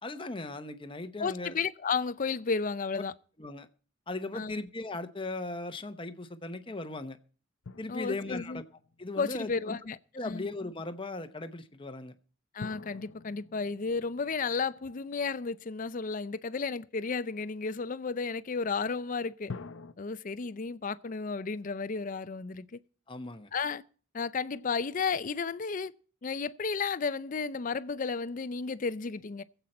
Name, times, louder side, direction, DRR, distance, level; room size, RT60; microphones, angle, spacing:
voice 1, 0.0-1.6 2.9-3.0 3.4-3.7 4.1-7.2 7.8-8.6 9.0-9.8 10.1-12.1 23.1-23.5, left 2 dB, 25° left, 0.9 m, -38 dB
voice 2, 1.2-3.1 4.3-4.6 7.9-8.6 9.2-10.5 12.5-19.5 20.0-22.8 23.5-23.8 24.1-25.9 26.2-29.4, left 5 dB, 45° left, 0.5 m, -33 dB
sound 1, 7.6-9.6 12.6-15.9 19.5-19.9, left 4 dB, 85° left, 0.7 m, -47 dB
22.0 x 8.0 x 4.3 m
head